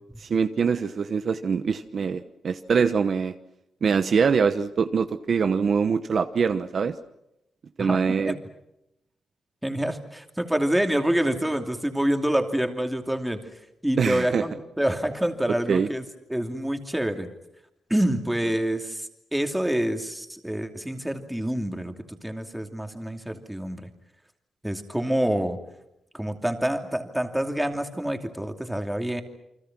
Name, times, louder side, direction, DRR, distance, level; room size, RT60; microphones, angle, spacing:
voice 1, 0.2-3.3 3.8-7.0 7.8-8.3 14.0-14.4 15.7-15.9, right 6 dB, 50° right, 9 dB, 1.0 m, -23 dB
voice 2, 7.8-8.4 9.6-13.4 13.8-17.3 17.9-23.9 24.6-25.6 26.1-29.2, right 1 dB, 5° right, 5 dB, 2.7 m, -27 dB
29.0 x 24.5 x 6.1 m, 0.85 s
wide cardioid pair, 125°, 0 cm